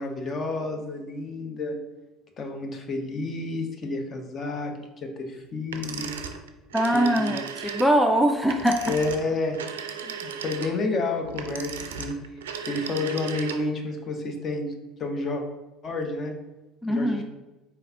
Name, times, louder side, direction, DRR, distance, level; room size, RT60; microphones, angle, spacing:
voice 1, 0.0-1.8 2.4-6.1 6.9-7.3 8.9-9.6 10.0-12.1 12.7-15.4 15.8-16.3 16.9-17.2, left 3 dB, 35° left, 4 dB, 0.7 m, -30 dB
sound 1, 5.7-13.8, right 7 dB, 70° right, 0.3 m, -36 dB
voice 2, 6.7-8.9 16.8-17.2, equal, ahead, 4 dB, 0.4 m, -22 dB
4.4 x 3.8 x 2.6 m, 1.1 s
figure-of-eight pair, 65°, 0 cm